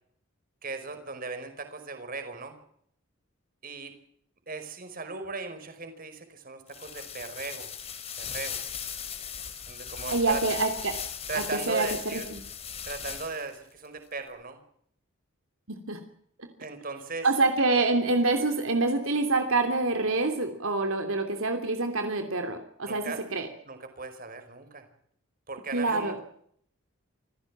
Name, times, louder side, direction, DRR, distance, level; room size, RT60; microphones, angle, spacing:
voice 1, 0.6-2.6 3.6-4.0 4.5-7.7 8.2-8.6 9.7-10.4 11.3-12.3 12.8-14.6 16.6-17.3 22.9-23.2 23.7-24.9 25.5-26.2, right 3 dB, 45° right, 8 dB, 5.0 m, -38 dB
sound 1, 6.7-13.6, left 8 dB, 30° left, 2.9 m, -38 dB
voice 2, 10.1-11.0 11.3-12.4 15.7-16.0 16.4-16.5 17.2-23.5 25.7-26.2, right 3 dB, 75° right, 6 dB, 3.0 m, -26 dB
27.5 x 16.5 x 7.4 m, 0.67 s
head